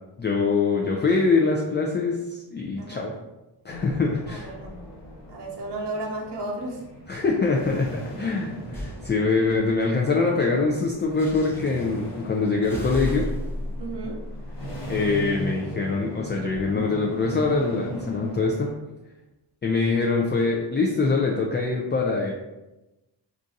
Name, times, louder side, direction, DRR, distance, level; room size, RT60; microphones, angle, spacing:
voice 1, 0.2-3.1 3.6-4.5 7.1-13.3 14.9-18.7 19.6-22.3, left 4 dB, 25° left, -1 dB, 0.3 m, -24 dB
sound 1, 3.7-18.7, right 1 dB, 55° left, 1.3 m, -39 dB
voice 2, 4.3-4.8 5.3-6.8 13.8-14.3, right 2 dB, 65° right, -2 dB, 0.8 m, -33 dB
sound 2, 8.7-9.0 11.2-11.9 12.6-15.3, equal, 5° left, 0.8 m, -34 dB
2.6 x 2.3 x 4.0 m, 1.0 s
wide cardioid pair, 90°, 43 cm